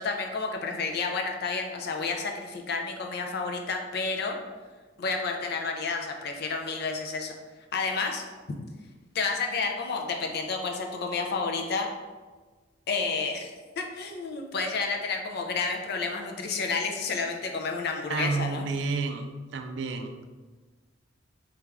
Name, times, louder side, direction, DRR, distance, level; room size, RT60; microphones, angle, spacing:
voice 1, 0.0-4.4 5.0-7.3 7.7-8.2 9.1-11.9 12.9-13.5 13.8-18.7, left 4 dB, 55° left, 3 dB, 0.4 m, -30 dB
voice 2, 18.1-19.2 19.5-20.1, right 4 dB, 65° right, 6 dB, 0.4 m, -30 dB
3.2 x 2.4 x 3.4 m, 1.3 s
head